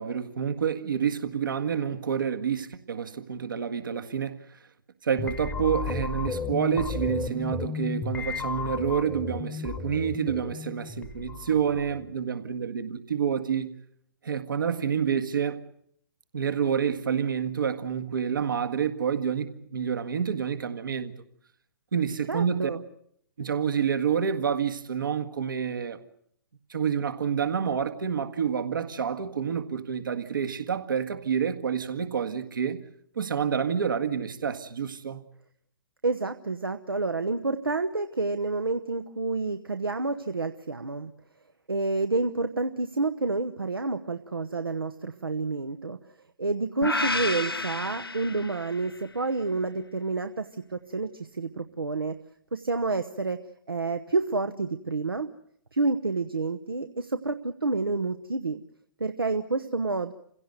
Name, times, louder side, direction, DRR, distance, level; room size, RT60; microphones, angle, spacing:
voice 1, 0.0-4.6 5.0-13.7 14.2-15.6 16.3-21.1 21.9-22.7 23.4-26.0 26.7-32.8 33.2-35.2, right 7 dB, 65° right, 1.8 m, -28 dB
sound 1, 5.2-12.1, left 5 dB, 10° left, 1.0 m, -34 dB
voice 2, 22.3-22.8 36.0-41.1 41.7-46.0 46.4-52.2 52.5-53.4 53.7-55.3 55.7-58.6 59.0-60.1, right 3 dB, 80° right, 1.0 m, -29 dB
sound 2, 46.8-49.0, left 2 dB, 90° left, 0.8 m, -30 dB
27.5 x 16.5 x 8.0 m
figure-of-eight pair, 125°, 12 cm